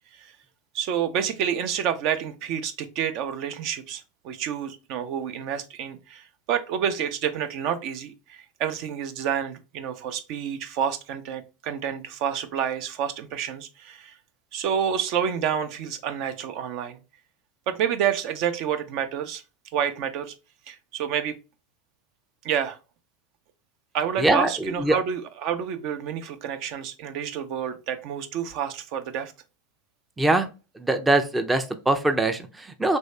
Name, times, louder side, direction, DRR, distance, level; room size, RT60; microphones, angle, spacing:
voice 1, 0.7-14.2 14.5-17.0 17.7-19.4 19.7-20.3 20.7-21.4 22.4-22.8 23.9-29.3, right 8 dB, 55° right, 8 dB, 0.6 m, -29 dB
voice 2, 24.2-24.5 24.8-25.0 30.2-30.5 30.8-33.0, right 2 dB, 10° right, 6 dB, 0.5 m, -22 dB
3.2 x 2.6 x 3.2 m, 0.31 s
hypercardioid pair, 105°, 0 cm